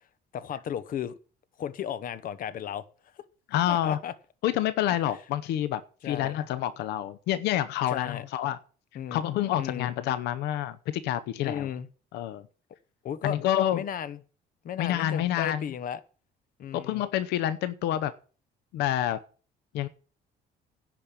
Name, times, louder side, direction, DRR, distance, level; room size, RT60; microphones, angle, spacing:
voice 1, 0.3-1.1 1.6-2.8 3.7-4.1 6.0-6.3 7.9-8.2 8.9-9.2 9.5-9.9 11.4-11.9 13.0-13.4 13.7-14.2 14.6-16.0 16.6-17.0, left 9 dB, 55° left, 1.0 m, -34 dB
voice 2, 3.5-4.0 4.4-8.6 9.1-11.7 12.1-12.4 13.2-13.8 14.8-15.7 16.7-18.1 18.7-19.2 19.7-19.9, left 12 dB, 85° left, 0.8 m, -28 dB
11.0 x 5.3 x 8.5 m
cardioid pair, 110°, 17 cm